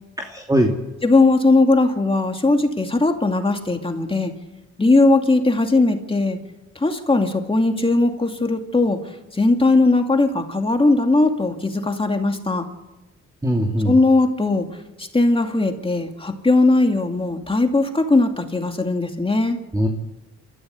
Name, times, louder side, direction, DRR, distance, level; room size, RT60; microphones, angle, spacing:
voice 1, 0.2-0.7 13.4-14.0 19.7-19.9, equal, 10° right, 1 dB, 2.6 m, -20 dB
voice 2, 1.0-4.3 4.8-6.4 6.8-9.0 9.3-12.7 13.8-14.7 15.0-19.6, left 2 dB, 20° left, 4 dB, 2.5 m, -18 dB
29.0 x 14.0 x 8.4 m, 1.1 s
cardioid pair, 90°, 30 cm